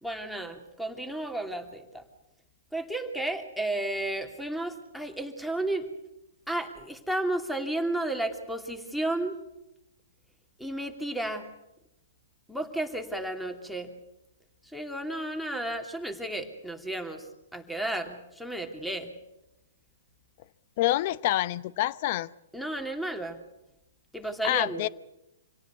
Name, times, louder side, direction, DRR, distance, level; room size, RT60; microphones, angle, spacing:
voice 1, 0.0-2.0 2.7-5.9 6.5-9.4 10.6-11.5 12.5-13.9 14.6-17.3 17.5-19.1 22.5-23.4 24.1-24.9, right 1 dB, ahead, 2.7 m, -33 dB
voice 2, 20.8-22.3 24.4-24.9, left 15 dB, 45° left, 0.8 m, -27 dB
26.5 x 17.5 x 8.2 m
hypercardioid pair, 125°, 0 cm